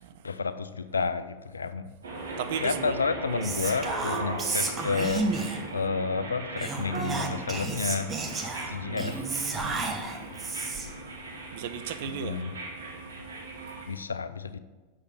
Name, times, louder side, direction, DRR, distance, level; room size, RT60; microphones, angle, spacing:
voice 1, 0.2-1.9 2.6-5.3 5.7-8.1 8.6-9.2 12.0-12.5 13.9-14.6, left 4 dB, 85° left, 0.4 m, -30 dB
sound 1, 2.0-13.9, right 2 dB, 80° right, 1.4 m, -38 dB
voice 2, 2.4-2.9 3.3-3.5 8.9-10.3 11.5-12.4 13.2-13.7, right 8 dB, 60° right, 0.6 m, -37 dB
Whispering, 3.4-5.7 6.6-11.0, right 3 dB, 25° right, 1.2 m, -32 dB
6.8 x 6.6 x 5.9 m
figure-of-eight pair, 90°, 0 cm